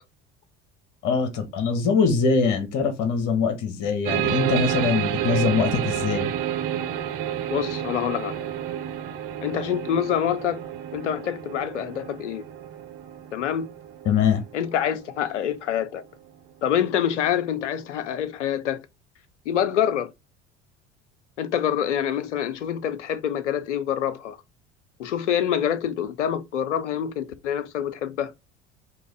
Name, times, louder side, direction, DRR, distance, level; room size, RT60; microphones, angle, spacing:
voice 1, 1.0-6.3 14.0-14.4, left 5 dB, 55° left, 1.4 m, -23 dB
sound 1, 4.1-15.3, right 10 dB, 60° right, 1.0 m, -30 dB
voice 2, 7.5-8.5 9.4-10.6 10.9-12.5 13.3-13.7 14.5-16.0 16.6-18.8 19.5-20.1 21.4-24.4 25.0-28.3, left 9 dB, 85° left, 0.6 m, -26 dB
3.8 x 3.0 x 4.7 m
hypercardioid pair, 65°, 35 cm